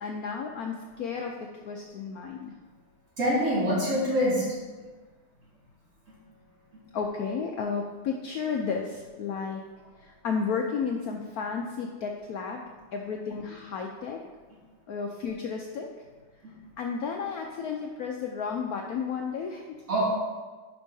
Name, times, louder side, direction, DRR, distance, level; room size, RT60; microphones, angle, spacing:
voice 1, 0.0-2.5 6.9-9.6 10.0-12.6 12.9-14.2 14.9-15.9 16.8-19.6, left 5 dB, 85° left, 2 dB, 0.8 m, -32 dB
voice 2, 3.2-4.4 19.9-20.1, equal, 40° right, -8 dB, 2.7 m, -24 dB
11.5 x 5.5 x 2.7 m, 1.4 s
omnidirectional pair, 2.2 m